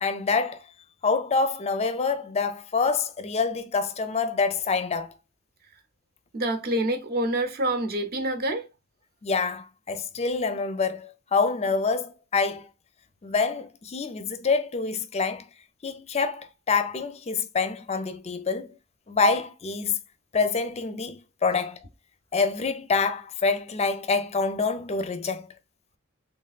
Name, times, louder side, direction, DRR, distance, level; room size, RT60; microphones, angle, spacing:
voice 1, 0.0-0.6 1.0-5.1 9.2-12.7 13.2-15.4 15.8-18.8 19.1-20.0 20.3-21.8 22.3-25.5, left 4 dB, 30° left, 0.5 m, -26 dB
voice 2, 6.3-8.7, right 1 dB, 50° right, 0.8 m, -27 dB
3.4 x 3.3 x 2.4 m
head